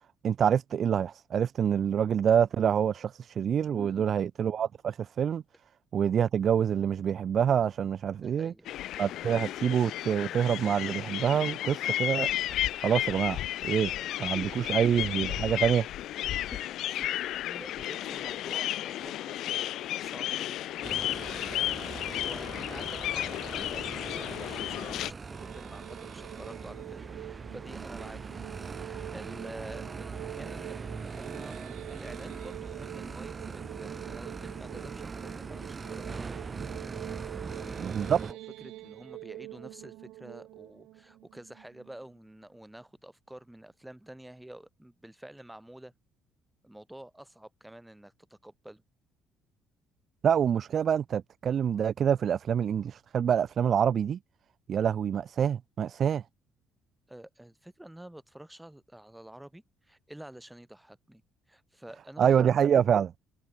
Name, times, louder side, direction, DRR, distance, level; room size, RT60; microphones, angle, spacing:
voice 1, 0.2-5.4 5.9-8.5 9.0-12.3 12.8-13.9 14.2-15.9 37.8-38.2 50.2-54.2 54.7-56.2 62.2-63.1, right 8 dB, 45° right, 0.7 m, -26 dB
voice 2, 3.7-4.1 8.2-8.8 14.2-14.7 16.5-17.1 17.4-21.1 21.5-31.6 31.9-36.3 37.4-45.9 46.6-48.8 57.1-61.2 61.5-62.5, right 1 dB, 5° right, 4.1 m, -49 dB
sound 1, 8.6-25.1, left 13 dB, 65° left, 0.6 m, -33 dB
sound 2, 20.8-38.3, right 4 dB, 25° right, 3.7 m, -41 dB
sound 3, 25.2-42.2, right 17 dB, 85° right, 4.6 m, -46 dB
cardioid pair, 125°, 0 cm